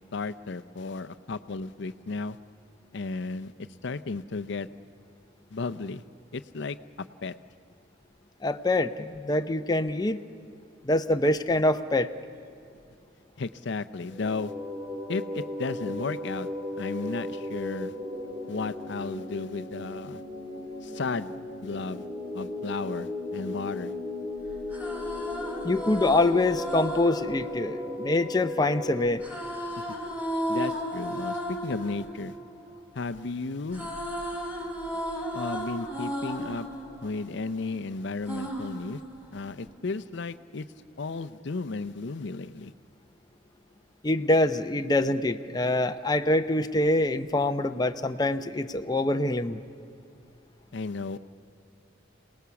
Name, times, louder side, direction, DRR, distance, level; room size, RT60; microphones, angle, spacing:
voice 1, 0.1-2.4 2.9-4.7 5.5-6.0 6.3-7.3 13.4-14.5 15.1-16.5 16.8-17.9 18.5-20.2 20.8-21.4 21.6-22.1 22.3-23.9 29.8-29.9 30.5-32.4 32.9-33.9 35.3-36.7 37.0-39.0 39.3-40.7 41.0-42.7 50.7-51.2, left 3 dB, 65° left, 11 dB, 0.6 m, -34 dB
voice 2, 8.4-10.2 10.8-12.1 25.6-29.2 44.0-49.6, left 2 dB, 20° left, 8 dB, 0.6 m, -25 dB
sound 1, 14.1-29.1, left 2 dB, 25° right, 4.0 m, -36 dB
sound 2, 24.5-28.6 29.2-33.2 33.5-37.8 38.3-39.7, equal, 10° right, 4.3 m, -35 dB
27.5 x 19.0 x 7.0 m, 2.5 s
head